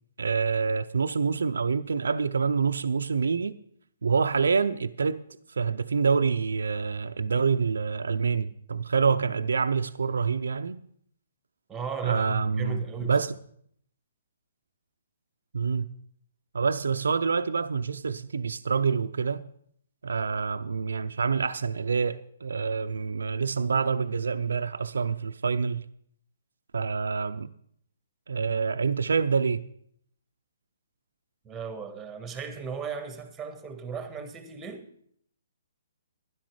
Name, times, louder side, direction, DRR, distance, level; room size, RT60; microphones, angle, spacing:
voice 1, 0.2-3.5 4.0-5.2 5.5-10.8 12.0-13.3 15.5-15.9 16.5-19.5 20.0-25.9 26.7-27.5 28.3-29.6, right 5 dB, 80° right, 0.5 m, -26 dB
voice 2, 11.7-13.2 31.4-34.9, right 5 dB, 10° right, 1.6 m, -36 dB
12.0 x 10.5 x 4.8 m
hypercardioid pair, 140°, 0 cm